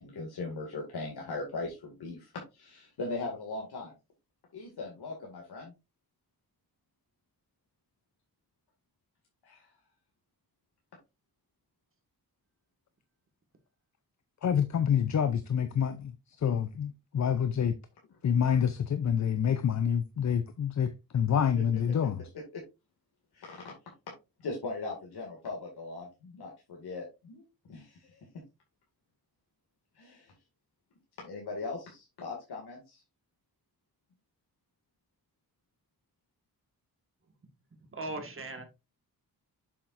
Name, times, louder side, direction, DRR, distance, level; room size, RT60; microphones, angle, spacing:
voice 1, 0.0-3.9 4.5-5.7 9.4-9.7 22.5-22.6 23.3-23.7 24.4-28.3 30.0-30.3 31.2-33.0, left 3 dB, 90° left, 2.3 m, -39 dB
voice 2, 14.4-17.7 18.2-22.2, left 8 dB, 45° left, 0.6 m, -27 dB
voice 3, 37.9-38.6, right 2 dB, 35° right, 1.8 m, -38 dB
7.3 x 7.3 x 2.6 m
wide cardioid pair, 155°, 38 cm